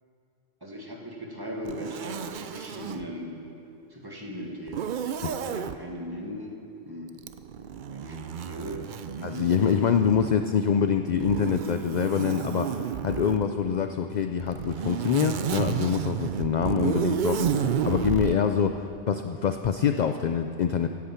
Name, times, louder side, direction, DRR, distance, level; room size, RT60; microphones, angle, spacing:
voice 1, 0.6-3.5 3.9-4.9 5.2-6.5 6.8-7.1 7.9-8.8 9.2-9.8, equal, 20° right, -1 dB, 1.6 m, -38 dB
Zipper (clothing), 1.6-3.1 4.7-5.8 7.2-10.4 11.2-13.5 14.4-18.4, right 8 dB, 60° right, 0.5 m, -31 dB
voice 2, 9.2-20.9, left 7 dB, 60° left, 7 dB, 0.4 m, -25 dB
16.5 x 8.6 x 5.8 m, 2.7 s
omnidirectional pair, 1.2 m